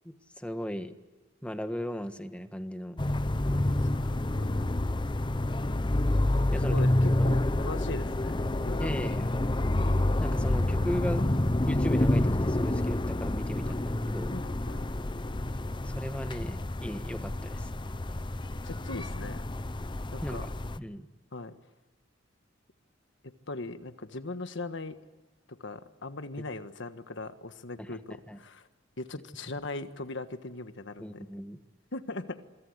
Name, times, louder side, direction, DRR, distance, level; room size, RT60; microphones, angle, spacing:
voice 1, 0.0-1.0 1.4-3.0 6.5-6.8 7.2-7.3 8.8-9.3 10.2-11.3 11.6-14.4 15.8-17.7 20.2-20.4 20.8-21.1 27.8-28.0 28.3-28.4 31.0-31.6, equal, 5° left, 8 dB, 1.4 m, -37 dB
sound 1, 3.0-20.8, left 1 dB, 25° left, 0.7 m, -28 dB
voice 2, 3.9-4.5 6.6-8.3 8.6-9.0 14.3-14.9 18.6-19.4 20.1-20.5 21.3-21.5 23.2-25.0 25.5-28.7 29.0-31.2 31.9-32.4, left 2 dB, 65° left, 10 dB, 1.5 m, -39 dB
27.0 x 23.0 x 8.1 m, 1.2 s
head